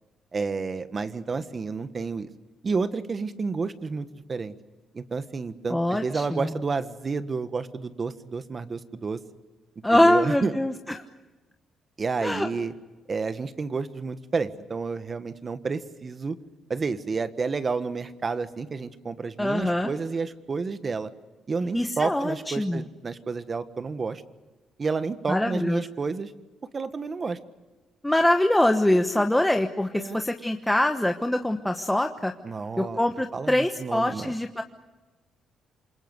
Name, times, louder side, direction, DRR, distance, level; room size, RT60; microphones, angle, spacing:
voice 1, 0.3-2.3 2.6-4.5 4.9-9.2 9.9-10.5 12.0-12.7 13.1-16.4 16.7-21.1 21.5-24.2 24.8-26.3 26.7-27.4 28.9-29.2 30.0-30.2 32.4-33.0 33.3-34.3, right 4 dB, 35° right, 11 dB, 1.5 m, -30 dB
voice 2, 5.7-6.5 9.8-10.7 12.2-12.5 19.4-19.9 21.7-22.9 25.3-25.8 28.0-32.3 32.8-34.6, left 1 dB, 5° left, 5 dB, 1.2 m, -24 dB
27.5 x 23.0 x 8.1 m, 1.2 s
cardioid pair, 90°, 0 cm